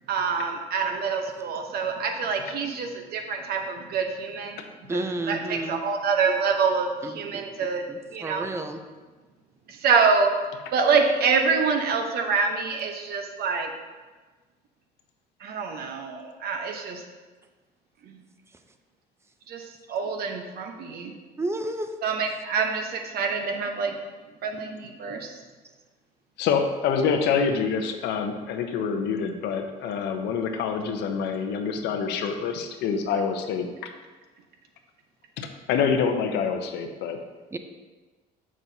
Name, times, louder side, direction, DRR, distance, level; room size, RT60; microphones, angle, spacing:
voice 1, 0.1-4.6 4.9-7.8 8.1-8.5 9.7-10.3 10.7-13.7 15.4-17.0 18.0-18.1 19.5-21.2 22.0-24.0 24.4-25.3, right 5 dB, 65° right, 4 dB, 0.9 m, -26 dB
voice 2, 4.9-5.8 7.0-7.4 7.9-8.8 21.4-21.9 37.5-37.6, right 2 dB, 15° right, 7 dB, 0.5 m, -31 dB
voice 3, 26.4-33.9 35.4-37.2, left 6 dB, 85° left, 5 dB, 0.7 m, -26 dB
7.4 x 6.1 x 2.7 m, 1.3 s
cardioid pair, 110°, 17 cm